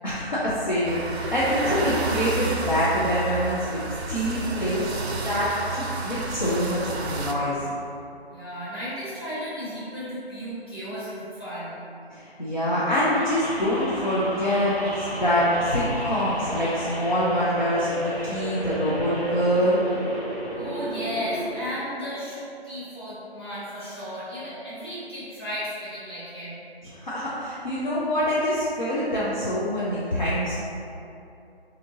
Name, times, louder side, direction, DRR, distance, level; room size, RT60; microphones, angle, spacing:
voice 1, 0.0-4.8 5.2-7.7 12.1-19.8 26.8-30.6, equal, 45° left, -9 dB, 0.6 m, -25 dB
sound 1, 0.8-7.3, right 3 dB, 85° right, 0.5 m, -30 dB
voice 2, 8.3-11.8 20.5-26.6, equal, 25° left, -14 dB, 1.1 m, -34 dB
sound 2, 13.1-21.7, equal, 90° left, 0.9 m, -34 dB
4.3 x 2.7 x 2.6 m, 2.6 s
figure-of-eight pair, 165°, 31 cm